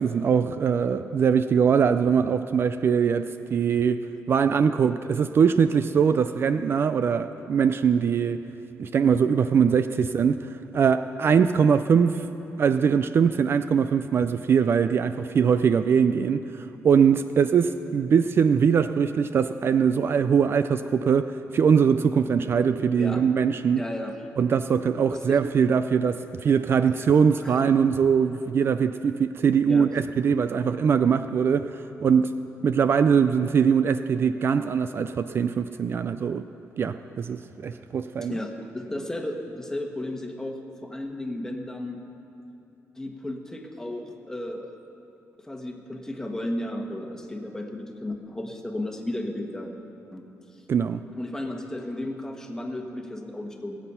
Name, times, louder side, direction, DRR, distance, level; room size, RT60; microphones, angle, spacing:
voice 1, 0.0-4.0 4.3-8.4 8.8-12.2 12.6-23.8 24.4-32.3 32.6-36.4 36.8-38.4 50.7-51.0, right 6 dB, 45° right, 11 dB, 0.3 m, -22 dB
voice 2, 23.8-24.2 25.1-25.4 26.9-27.0 27.4-27.6 29.7-29.9 37.7-37.8 38.2-42.0 43.0-44.7 45.4-49.7 50.1-50.2 51.1-53.8, left 1 dB, 10° left, 3 dB, 1.3 m, -34 dB
20.0 x 8.1 x 5.6 m, 2.8 s
cardioid pair, 130°, 5 cm